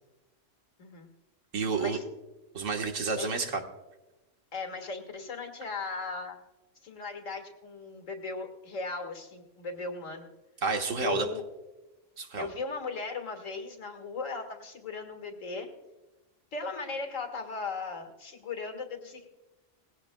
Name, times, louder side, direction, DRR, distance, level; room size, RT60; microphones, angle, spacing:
voice 1, 0.8-1.1 1.8-2.0 3.2-3.3 4.5-6.4 6.8-10.3 11.0-11.4 12.3-15.7 16.5-19.3, left 4 dB, 90° left, 5 dB, 2.0 m, -37 dB
voice 2, 1.5-2.0 2.5-3.6 10.6-11.3 12.2-12.5, right 4 dB, 80° right, 4 dB, 1.7 m, -30 dB
19.5 x 16.5 x 2.2 m, 1.0 s
omnidirectional pair, 1.3 m